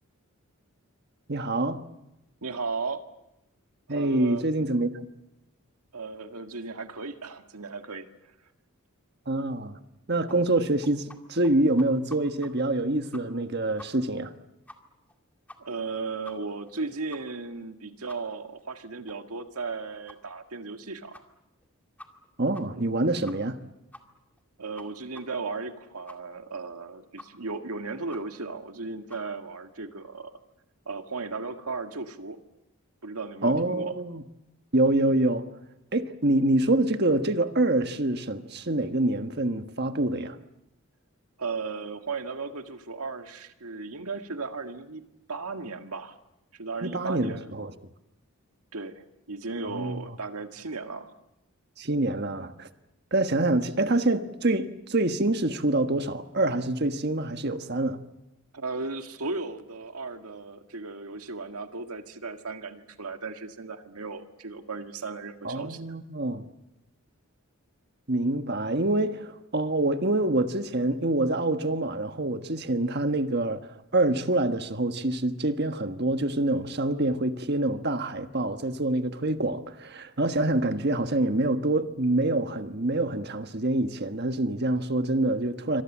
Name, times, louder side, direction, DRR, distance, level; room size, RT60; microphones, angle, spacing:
voice 1, 1.3-1.8 3.9-5.1 9.3-9.8 10.1-14.3 22.4-23.6 33.4-34.2 34.7-35.5 35.9-40.4 46.8-47.7 49.7-50.0 51.8-52.7 53.1-58.0 65.4-66.4 68.1-85.8, right 2 dB, 45° right, 1.4 m, -26 dB
voice 2, 2.4-3.0 3.9-4.4 5.9-8.1 15.6-21.2 24.6-30.3 30.9-32.4 33.0-33.9 41.4-45.0 45.3-46.2 46.5-47.5 48.7-49.0 49.3-51.1 58.5-65.8, right 4 dB, 85° right, 1.9 m, -36 dB
sound 1, 10.3-11.2 11.4-11.5 11.8-12.5 12.8-12.9 13.1-13.5 13.8-13.9 14.2-14.3 14.7-14.8 15.1-15.2 15.5-15.8 16.2-16.3 16.7-16.8 17.1-17.2 17.6-17.7 18.1-18.2 18.6-18.7 19.1-19.2 19.5-19.6 20.1-20.2 20.6-20.7 21.1-21.2 21.6-21.7 22.0-22.3 22.5-22.6 22.9-23.0 23.3-23.6 23.9-24.0 24.4-24.5 24.8-24.9 25.1-25.2 25.6-25.7 26.1-26.2 26.6-26.7 27.2-27.3 27.6-27.7 28.1-28.2 28.6-28.7 29.1-29.2, left 1 dB, 5° left, 2.2 m, -47 dB
27.5 x 25.5 x 7.4 m
head